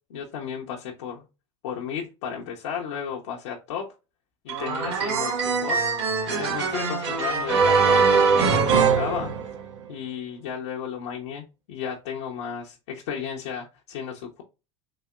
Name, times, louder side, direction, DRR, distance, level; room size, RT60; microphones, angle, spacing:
voice 1, 0.1-1.2 1.6-3.9 4.4-5.8 6.3-9.3 9.9-14.4, left 7 dB, 80° left, 0.8 m, -34 dB
sound 1, 4.5-9.9, right 5 dB, 85° right, 1.8 m, -22 dB
4.1 x 2.7 x 2.3 m
hypercardioid pair, 90°, 15 cm